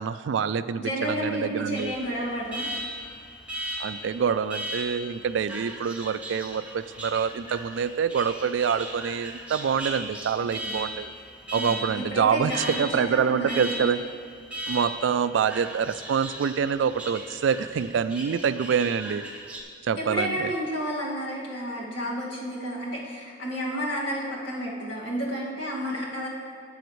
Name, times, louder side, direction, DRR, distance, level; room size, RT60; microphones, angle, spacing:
voice 1, 0.0-1.9 3.8-11.1 11.5-14.0 14.7-19.2 19.8-20.5, right 7 dB, 85° right, 14 dB, 0.3 m, -26 dB
voice 2, 0.7-2.7 10.6-10.9 11.6-12.8 13.1-14.0 20.0-26.3, equal, 85° left, -4 dB, 2.0 m, -31 dB
Alarm, 1.8-19.6, equal, 5° right, 0.9 m, -38 dB
13.0 x 7.8 x 3.1 m, 2.2 s
head